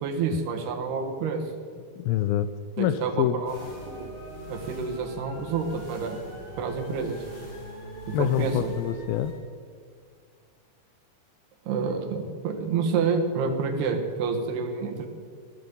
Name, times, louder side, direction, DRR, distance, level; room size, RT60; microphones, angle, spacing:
voice 1, 0.0-1.4 2.8-4.1 4.5-6.3 6.6-7.3 8.1-8.7 11.7-15.1, right 5 dB, 90° right, 4 dB, 3.6 m, -28 dB
voice 2, 2.0-2.5 2.8-3.4 8.1-9.3, left 11 dB, 80° left, 13 dB, 2.2 m, -26 dB
sound 1, 3.4-9.3, equal, 25° left, 4.8 m, -42 dB
16.0 x 12.0 x 7.0 m, 2.1 s
omnidirectional pair, 4.5 m